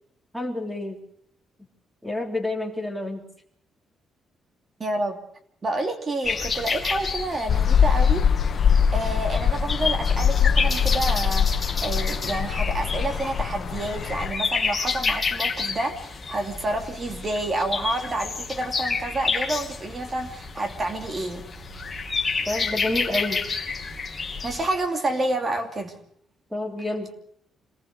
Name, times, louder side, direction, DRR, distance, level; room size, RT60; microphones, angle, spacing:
voice 1, 0.3-1.0 2.0-3.3 22.5-23.4 26.5-27.1, left 2 dB, 5° right, 4 dB, 3.5 m, -29 dB
voice 2, 4.8-5.2 5.6-8.3 8.7-21.5 24.4-26.0, right 2 dB, 25° right, 6 dB, 2.8 m, -29 dB
sound 1, 6.2-24.6, left 4 dB, 20° left, 2.8 m, -30 dB
sound 2, 7.5-14.3, left 7 dB, 50° left, 1.6 m, -22 dB
26.5 x 19.5 x 6.6 m, 0.66 s
cardioid pair, 160°, 0 cm